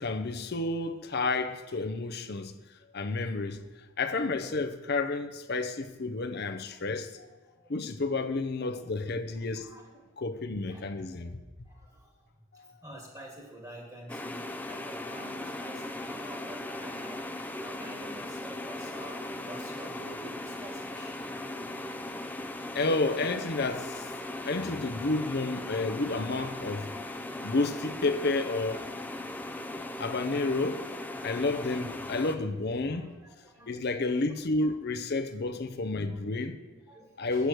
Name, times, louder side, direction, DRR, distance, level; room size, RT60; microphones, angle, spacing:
voice 1, 0.0-2.5 2.9-3.6 4.0-7.3 7.7-9.7 10.2-11.4 12.5-12.7 22.7-24.1 24.4-26.9 27.4-28.9 30.0-30.8 31.2-33.1 33.7-36.6 37.2-37.5, left 3 dB, 45° left, 0.6 m, -30 dB
voice 2, 9.1-9.9 10.7-10.9 11.2-11.3 11.6-12.1 12.8-17.2 17.6-21.2 31.2-31.7 32.8-34.1 36.7-37.5, right 1 dB, 15° right, 1.3 m, -48 dB
sound 1, 14.1-32.4, left 1 dB, 10° left, 0.4 m, -38 dB
8.2 x 8.1 x 6.1 m
head